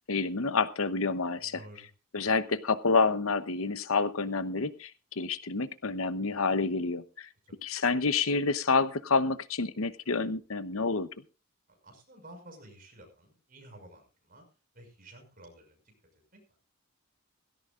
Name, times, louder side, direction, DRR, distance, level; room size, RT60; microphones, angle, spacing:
voice 1, 0.1-1.6 2.1-7.3 7.6-11.1, left 4 dB, 70° left, 13 dB, 0.9 m, -28 dB
voice 2, 1.4-1.9 7.4-7.6 11.7-14.5 14.7-15.9 16.3-16.6, right 1 dB, 40° right, 3 dB, 5.9 m, -52 dB
17.0 x 16.5 x 2.5 m, 0.31 s
head